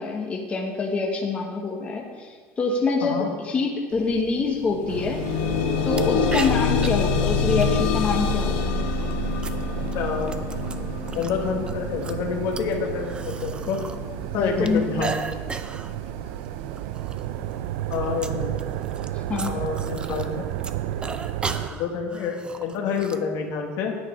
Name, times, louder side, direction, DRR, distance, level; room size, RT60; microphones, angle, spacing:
voice 1, 0.0-5.3 5.8-8.8 14.4-14.9 19.3-19.5, left 4 dB, 20° left, 0 dB, 1.1 m, -26 dB
sound 1, 4.0-4.1 4.5-15.5 16.3-16.4 16.8-16.9, left 5 dB, 90° left, 1.0 m, -27 dB
sound 2, 4.9-21.7, right 12 dB, 80° right, 0.4 m, -33 dB
sound 3, 5.9-6.0 6.3-6.9 7.6-8.1 8.9-11.3 11.7-14.0 14.2-15.9 16.3-16.5 16.8-17.3 17.5-20.3 20.6-23.2, right 4 dB, 15° right, 0.5 m, -35 dB
voice 2, 9.9-10.3 11.1-13.8 14.3-15.1 17.9-18.5 19.4-20.5 21.6-23.9, left 6 dB, 60° left, 2 dB, 1.6 m, -28 dB
9.8 x 8.5 x 5.0 m, 1.5 s
cardioid pair, 140°, 6 cm